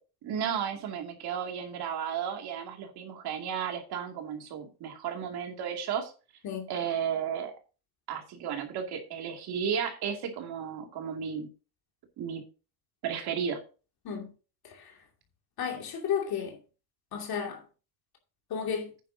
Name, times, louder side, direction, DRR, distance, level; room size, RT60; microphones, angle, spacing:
voice 1, 0.2-6.1 6.7-7.5 8.1-11.5 12.2-12.4 13.0-13.6, right 7 dB, 85° right, 2.6 m, -33 dB
voice 2, 15.6-16.6 17.1-17.6 18.5-18.9, left 7 dB, 75° left, 2.6 m, -33 dB
12.0 x 9.1 x 2.8 m
cardioid pair, 135°, 37 cm